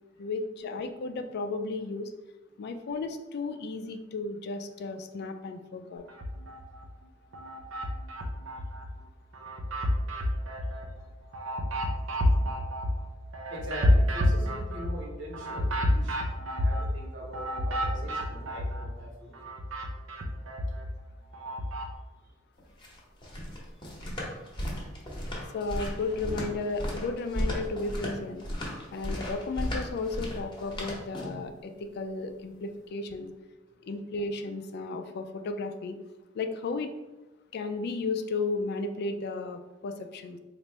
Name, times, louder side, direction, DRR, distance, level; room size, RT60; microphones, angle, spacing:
voice 1, 0.2-2.1 2.6-6.0 25.5-28.4 28.9-33.3 33.8-36.0 36.3-36.9 37.5-40.4, left 3 dB, 55° left, 7 dB, 0.3 m, -34 dB
sound 1, 6.1-6.9 7.3-8.9 9.3-19.0 19.3-21.9, left 1 dB, 85° right, 0.6 m, -29 dB
voice 2, 13.5-19.3 22.2-22.3, equal, 65° right, -2 dB, 1.1 m, -42 dB
sound 2, 22.6-31.5, equal, 25° left, 0.9 m, -35 dB
4.1 x 2.5 x 3.3 m, 1.1 s
head